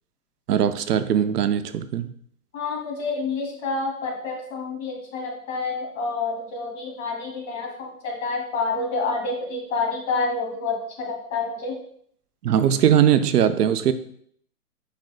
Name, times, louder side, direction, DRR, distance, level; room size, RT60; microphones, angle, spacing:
voice 1, 0.5-2.1 12.4-13.9, right 9 dB, 75° right, 11 dB, 0.7 m, -20 dB
voice 2, 2.5-11.8, left 3 dB, 55° left, -1 dB, 2.7 m, -28 dB
10.5 x 5.2 x 2.2 m, 0.64 s
hypercardioid pair, 140°, 47 cm